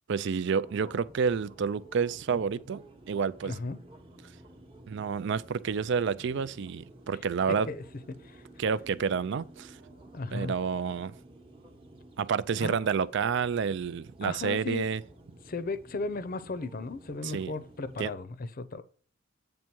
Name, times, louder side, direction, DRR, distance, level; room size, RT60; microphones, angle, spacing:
voice 1, 0.1-3.5 4.9-7.7 8.6-9.8 10.3-11.1 12.2-15.0 17.2-17.5 18.0-18.1, right 6 dB, 60° right, 0.4 m, -29 dB
sound 1, 0.6-18.1, right 1 dB, 25° right, 1.0 m, -53 dB
voice 2, 3.4-3.8 7.7-8.4 10.1-10.5 12.6-12.8 14.2-14.9 15.5-18.8, left 3 dB, 45° left, 0.6 m, -36 dB
8.8 x 3.6 x 6.0 m
head